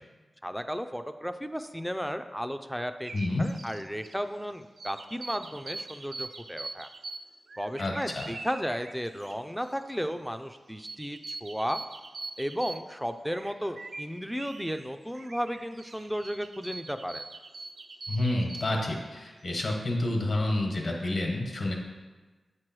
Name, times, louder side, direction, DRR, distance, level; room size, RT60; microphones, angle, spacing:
voice 1, 0.4-3.1 3.4-6.9 7.6-11.8 12.4-17.2, equal, ahead, 8 dB, 0.4 m, -34 dB
sound 1, 3.0-4.2 4.8-9.3 9.6-9.9 10.7-12.8 13.2-14.8 15.1-18.7, right 3 dB, 60° right, 0.5 m, -43 dB
voice 2, 3.1-3.5 7.8-8.3 18.1-21.7, left 1 dB, 65° left, 0 dB, 1.2 m, -29 dB
8.2 x 3.2 x 6.0 m, 1.3 s
wide cardioid pair, 85°, 0 cm